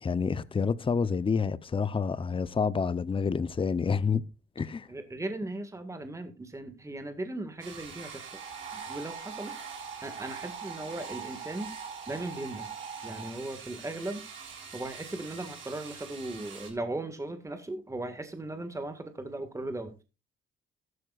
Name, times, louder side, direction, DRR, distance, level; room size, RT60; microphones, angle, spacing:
voice 1, 0.0-4.2 4.6-4.9, left 5 dB, 25° left, 0.8 m, -28 dB
voice 2, 4.9-8.3 8.7-9.5 10.0-11.7 12.1-12.7 13.0-14.2 14.7-20.0, right 2 dB, 15° right, 1.9 m, -37 dB
sound 1, 7.6-16.7, right 6 dB, 80° right, 7.2 m, -46 dB
sound 2, 8.3-13.3, right 6 dB, 45° right, 4.8 m, -43 dB
14.5 x 12.5 x 2.5 m
cardioid pair, 90°, 20 cm